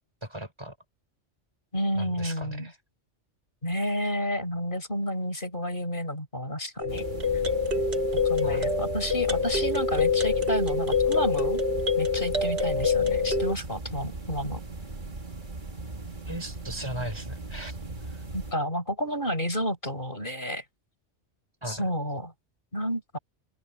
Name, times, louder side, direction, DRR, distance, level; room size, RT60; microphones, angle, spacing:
voice 1, 0.2-0.7 1.9-2.7 8.4-8.8 16.3-17.8 18.1-18.2 21.6-21.9, right 1 dB, 25° right, 5.8 m, -37 dB
voice 2, 1.7-2.7 3.6-7.0 8.2-11.6 12.0-14.6 18.3-20.6 21.7-22.3 22.7-23.2, equal, 50° left, 5.5 m, -30 dB
sound 1, 6.8-13.5, left 4 dB, 65° right, 2.1 m, -26 dB
sound 2, 6.9-18.5, right 2 dB, 45° right, 2.2 m, -38 dB
open air
omnidirectional pair, 1.2 m